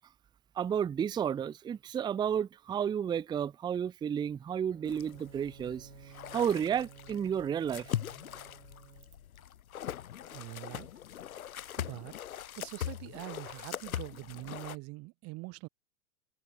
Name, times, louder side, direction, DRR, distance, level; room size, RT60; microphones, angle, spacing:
voice 1, 0.6-5.9 6.3-7.9, right 8 dB, 10° right, 0.7 m, -32 dB
Bowed string instrument, 4.6-9.4, right 11 dB, 80° right, 4.9 m, -55 dB
sound 1, 4.9-14.8, left 10 dB, 85° left, 1.8 m, -41 dB
voice 2, 10.3-10.9 11.8-12.1 12.5-15.7, right 24 dB, 35° right, 1.6 m, -44 dB
hypercardioid pair, 135°, 41 cm